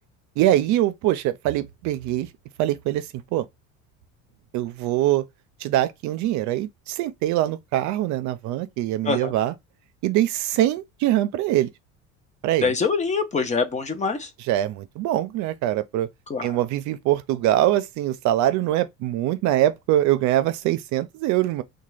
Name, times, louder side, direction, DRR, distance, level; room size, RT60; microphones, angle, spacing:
voice 1, 0.4-2.3 2.6-3.5 4.5-5.2 5.6-9.5 10.0-11.7 12.4-12.8 14.5-16.1 16.4-21.6, right 13 dB, 60° right, 0.5 m, -23 dB
voice 2, 12.6-14.3 16.3-16.5, left 4 dB, 20° left, 0.5 m, -24 dB
2.8 x 2.2 x 3.2 m
cardioid pair, 120°, 32 cm